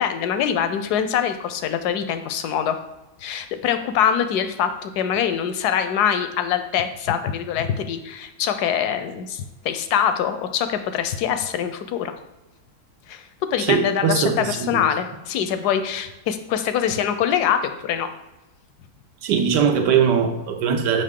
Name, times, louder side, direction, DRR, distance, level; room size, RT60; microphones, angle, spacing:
voice 1, 0.0-2.8 3.2-12.1 13.1-18.1, left 8 dB, 75° left, 9 dB, 1.1 m, -24 dB
voice 2, 13.6-14.8 19.2-21.0, right 7 dB, 90° right, 5 dB, 1.4 m, -21 dB
6.6 x 5.3 x 3.6 m, 1.0 s
omnidirectional pair, 1.8 m